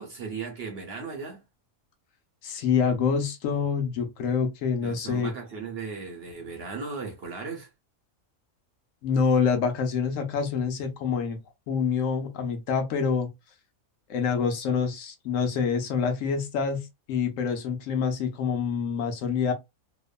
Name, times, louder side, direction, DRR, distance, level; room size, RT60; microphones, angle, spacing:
voice 1, 0.0-1.4 4.8-7.7, right 4 dB, 60° right, 0.7 m, -37 dB
voice 2, 2.4-5.3 9.0-11.4 11.7-13.3 14.1-19.5, left 6 dB, 70° left, 1.0 m, -26 dB
2.9 x 2.1 x 2.3 m
omnidirectional pair, 1.5 m